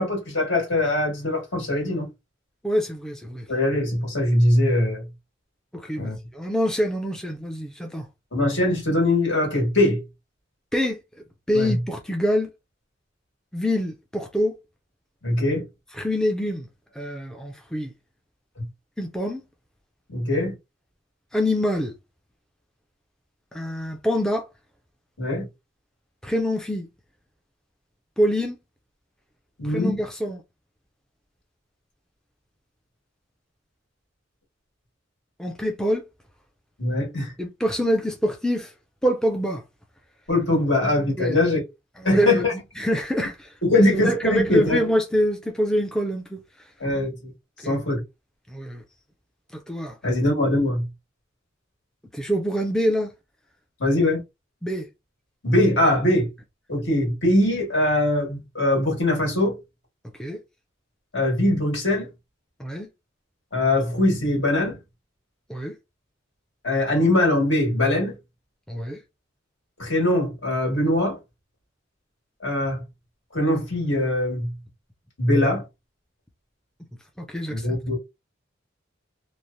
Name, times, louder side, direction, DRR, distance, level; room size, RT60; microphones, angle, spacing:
voice 1, 0.0-2.1 3.5-5.0 6.0-6.2 8.3-10.0 11.5-11.8 15.2-15.6 20.1-20.5 25.2-25.5 29.6-30.0 36.8-37.3 40.3-41.6 42.0-42.5 43.6-44.8 46.8-47.3 47.6-48.0 50.0-50.9 53.8-54.2 55.4-56.3 56.7-59.6 61.1-62.1 63.5-64.8 66.6-68.1 69.8-71.2 72.4-72.8 73.3-74.5 75.2-75.7 77.5-78.0, left 1 dB, 65° left, 1.8 m, -22 dB
voice 2, 2.6-3.5 5.7-8.0 10.7-11.0 11.5-12.5 13.5-14.6 16.0-16.7 17.0-17.9 19.0-19.4 21.3-21.9 23.5-24.5 26.2-26.9 28.2-28.5 29.7-30.4 35.4-36.0 37.4-38.7 39.0-39.6 41.2-41.4 42.0-42.4 42.8-46.4 47.6-47.7 48.5-48.8 49.7-50.0 52.1-53.1 54.6-54.9 60.2-60.4 62.6-62.9 65.5-65.7 68.7-69.0 77.2-77.8, equal, 5° left, 0.4 m, -25 dB
3.1 x 2.0 x 2.6 m
head